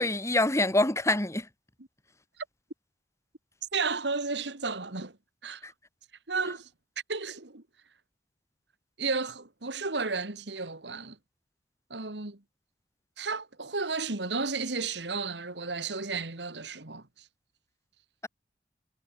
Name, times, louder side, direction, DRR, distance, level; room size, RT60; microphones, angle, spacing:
voice 1, 0.0-1.4, left 2 dB, 15° left, 2.5 m, -25 dB
voice 2, 3.7-5.1 5.4-5.7 6.3-6.7 7.1-7.6 9.0-11.2 11.9-12.4 13.2-17.0, right 4 dB, 70° right, 2.2 m, -33 dB
head